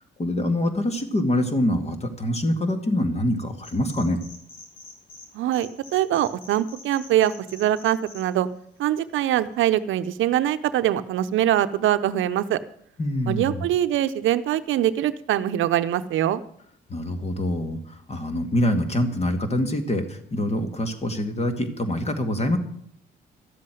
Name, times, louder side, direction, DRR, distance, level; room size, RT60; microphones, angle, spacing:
voice 1, 0.2-4.2 13.0-13.6 16.9-22.6, left 1 dB, 30° left, 7 dB, 2.3 m, -25 dB
sound 1, 3.6-5.3 5.5-8.2, left 3 dB, 90° left, 3.4 m, -45 dB
voice 2, 5.3-8.5 8.8-12.6 13.3-16.4, right 12 dB, 80° right, 12 dB, 0.7 m, -23 dB
13.0 x 7.6 x 9.2 m, 0.68 s
cardioid pair, 90°, 20 cm